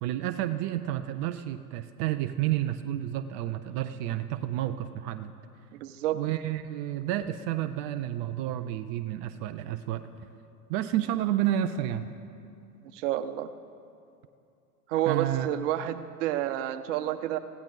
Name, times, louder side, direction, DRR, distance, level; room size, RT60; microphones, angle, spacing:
voice 1, 0.0-5.3 6.1-10.0 10.7-12.1 15.0-15.5, right 12 dB, 25° right, 9 dB, 0.3 m, -30 dB
voice 2, 5.7-6.2 12.9-13.5 14.9-17.4, right 12 dB, 50° right, 11 dB, 1.0 m, -29 dB
21.5 x 15.5 x 3.9 m, 2.6 s
hypercardioid pair, 95°, 46 cm